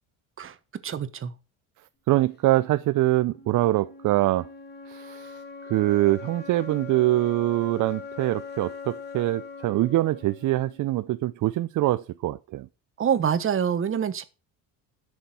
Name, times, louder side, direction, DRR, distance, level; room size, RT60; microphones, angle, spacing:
voice 1, 0.8-1.3 13.0-14.2, right 8 dB, 35° right, 1.3 m, -25 dB
voice 2, 2.1-4.5 4.9-12.7, right 16 dB, 55° right, 0.6 m, -24 dB
sound 1, 3.2-11.2, left 5 dB, 30° left, 2.4 m, -42 dB
11.5 x 6.5 x 6.0 m
cardioid pair, 125°, 36 cm